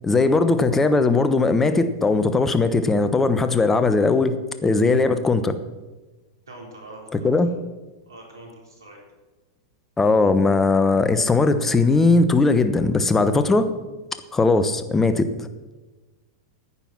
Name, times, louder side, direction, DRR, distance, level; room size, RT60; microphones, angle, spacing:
voice 1, 0.0-4.4 4.6-5.5 7.1-7.5 10.0-13.7 14.3-15.5, left 3 dB, 15° left, 11 dB, 1.0 m, -19 dB
voice 2, 6.5-7.4 8.1-9.0, right 2 dB, 90° right, 0 dB, 3.8 m, -41 dB
9.9 x 9.2 x 6.0 m, 1.2 s
hypercardioid pair, 105°, 2 cm